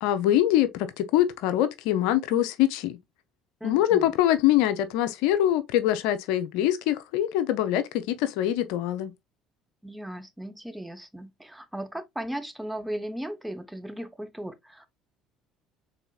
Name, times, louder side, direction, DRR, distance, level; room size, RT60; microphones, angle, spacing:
voice 1, 0.0-3.0 3.6-9.1, left 12 dB, 75° left, 0.6 m, -24 dB
voice 2, 3.6-4.1 9.8-14.9, right 1 dB, 5° right, 0.8 m, -37 dB
4.0 x 3.8 x 2.3 m
hypercardioid pair, 65°, 0 cm